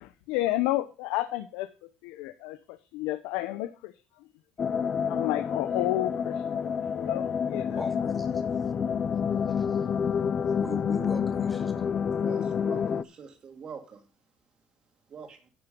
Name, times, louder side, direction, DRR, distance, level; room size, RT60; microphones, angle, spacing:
voice 1, 0.0-1.7 2.0-3.9 5.1-7.8, left 16 dB, 85° left, 0.8 m, -31 dB
sound 1, 4.6-13.0, left 7 dB, 25° left, 0.4 m, -28 dB
voice 2, 7.7-8.7 9.5-9.9 10.5-11.9, equal, 5° left, 1.3 m, -41 dB
voice 3, 12.2-14.0 15.1-15.4, right 6 dB, 30° right, 2.3 m, -44 dB
10.5 x 6.9 x 5.2 m
cardioid pair, 170°, 3 cm